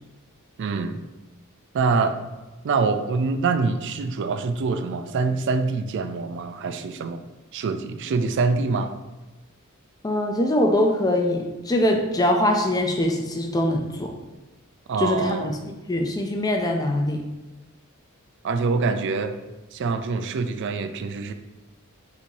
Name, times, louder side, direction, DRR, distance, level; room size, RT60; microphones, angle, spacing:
voice 1, 0.6-1.0 1.7-2.2 2.6-7.3 7.5-8.9 14.9-15.5 18.4-19.4 19.7-21.3, right 4 dB, 55° right, 9 dB, 0.4 m, -25 dB
voice 2, 10.0-14.1 15.0-15.6 15.9-17.2, left 1 dB, 15° left, 3 dB, 0.4 m, -23 dB
4.1 x 2.7 x 4.5 m, 1.1 s
head